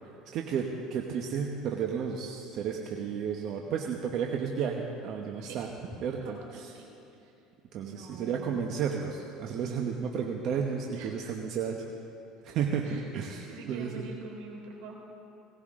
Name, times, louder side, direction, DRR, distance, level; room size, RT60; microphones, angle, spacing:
voice 1, 0.0-5.7 6.0-6.7 7.7-11.9 12.4-13.9, right 7 dB, 55° right, 1 dB, 1.2 m, -32 dB
voice 2, 6.2-6.9 7.2-7.3 7.8-8.6 11.0-11.3 12.5-12.6 12.8-14.9, right 3 dB, 85° right, -1 dB, 3.9 m, -45 dB
18.5 x 18.5 x 3.8 m, 2.7 s
supercardioid pair, 120°, 0 cm